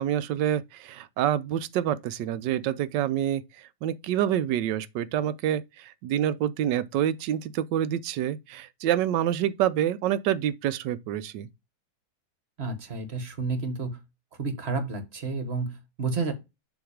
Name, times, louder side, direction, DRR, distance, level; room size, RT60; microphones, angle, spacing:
voice 1, 0.0-3.4 3.8-11.5, right 11 dB, 85° right, 1.3 m, -27 dB
voice 2, 12.6-14.0 14.4-16.3, right 4 dB, 40° right, 1.4 m, -30 dB
7.2 x 3.2 x 4.9 m
omnidirectional pair, 1.9 m